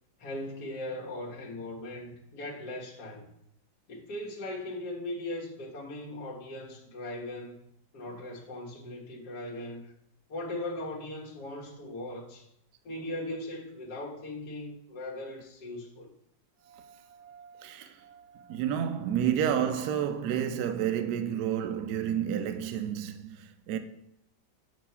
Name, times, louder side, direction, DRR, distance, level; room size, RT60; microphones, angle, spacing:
voice 1, 0.2-3.3 3.9-7.6 7.9-9.9 10.3-12.5 12.8-16.1, left 1 dB, 55° left, 1.6 m, -39 dB
voice 2, 16.7-23.8, right 9 dB, 70° right, 1.0 m, -31 dB
7.6 x 3.0 x 5.5 m
omnidirectional pair, 2.1 m